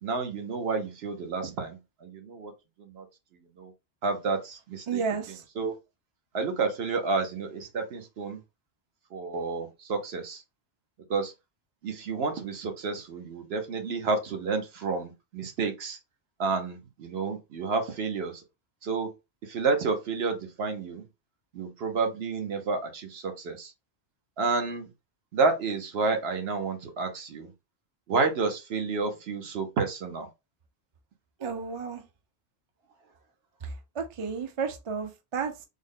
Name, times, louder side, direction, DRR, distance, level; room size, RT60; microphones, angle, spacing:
voice 1, 0.0-2.5 2.8-3.1 3.6-3.7 4.0-5.0 5.6-5.7 6.3-8.4 9.1-10.4 11.1-11.3 11.8-16.0 16.4-18.4 18.8-19.1 19.4-21.0 21.5-23.7 24.4-24.9 25.3-27.5 28.1-30.3, right 4 dB, 70° right, 1.0 m, -30 dB
voice 2, 4.9-5.4 31.4-32.0 33.6-35.6, right 5 dB, 40° right, 0.5 m, -32 dB
3.5 x 2.1 x 3.6 m
omnidirectional pair, 1.1 m